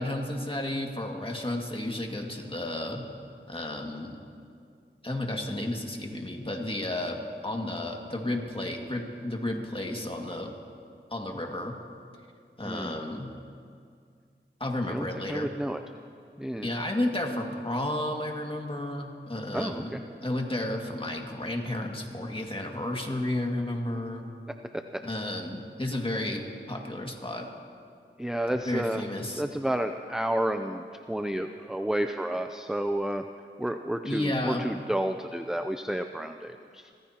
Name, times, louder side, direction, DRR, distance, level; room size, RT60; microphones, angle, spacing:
voice 1, 0.0-3.0 3.5-4.2 5.0-10.5 11.1-11.7 12.6-13.3 14.6-15.5 16.6-24.2 25.0-27.5 28.7-29.4 34.0-34.6, left 1 dB, 25° left, 1 dB, 2.1 m, -32 dB
voice 2, 12.6-13.1 14.9-15.8 16.4-16.7 19.5-20.0 28.2-33.2 33.6-36.9, right 1 dB, 5° right, 6 dB, 0.5 m, -31 dB
30.0 x 15.0 x 2.9 m, 2.3 s
wide cardioid pair, 55°, 20 cm